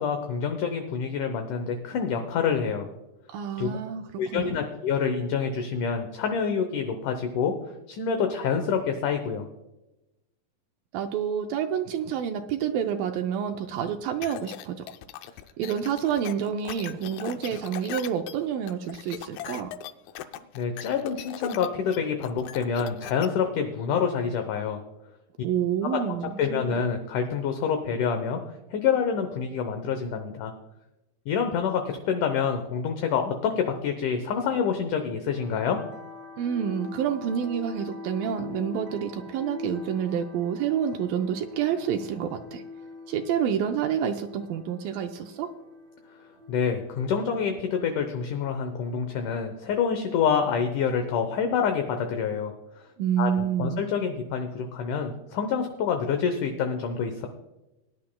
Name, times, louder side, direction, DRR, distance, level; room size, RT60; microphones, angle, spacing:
voice 1, 0.0-2.9 3.6-3.7 4.2-7.5 7.9-9.5 20.5-24.8 25.9-28.4 28.7-30.5 31.3-35.8 46.5-52.9 53.2-57.3, left 6 dB, 70° left, 5 dB, 2.0 m, -27 dB
voice 2, 3.3-4.0 4.3-4.6 10.9-14.9 15.6-19.7 25.4-26.8 36.4-42.6 43.1-45.5 53.0-53.8, right 8 dB, 80° right, 5 dB, 2.2 m, -28 dB
sound 1, 14.2-23.3, left 12 dB, 90° left, 2.6 m, -39 dB
sound 2, 35.3-49.4, left 3 dB, 35° right, 1.8 m, -43 dB
21.0 x 10.5 x 2.2 m, 0.97 s
omnidirectional pair, 4.4 m